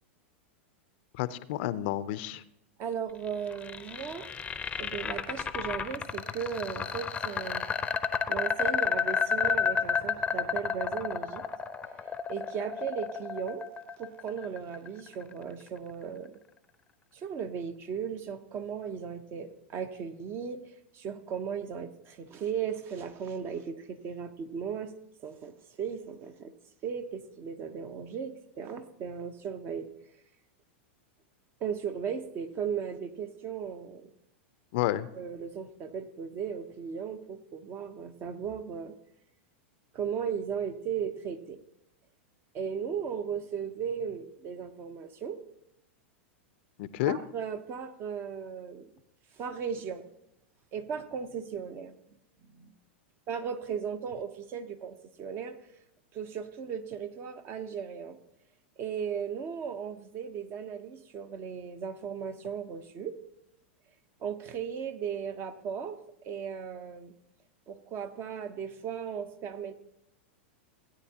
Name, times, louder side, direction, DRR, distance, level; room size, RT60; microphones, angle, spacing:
voice 1, 1.2-2.4 34.7-35.1 46.8-47.2, left 14 dB, 60° left, 15 dB, 0.5 m, -30 dB
voice 2, 2.8-4.3 4.8-7.6 8.3-11.5 12.3-13.6 14.0-16.4 17.1-20.6 20.9-24.9 25.2-26.5 26.8-29.9 31.6-34.1 35.1-38.9 39.9-41.6 42.5-45.4 47.0-48.9 49.4-50.1 50.7-51.9 52.4-52.7 53.3-55.6 56.1-58.2 58.8-63.2 64.2-66.0 66.2-67.1 67.7-69.7, right 7 dB, 35° right, 10 dB, 0.9 m, -36 dB
sound 1, 3.3-15.3, left 6 dB, 15° left, 0.6 m, -31 dB
17.0 x 9.3 x 2.9 m, 0.80 s
hypercardioid pair, 115°, 7 cm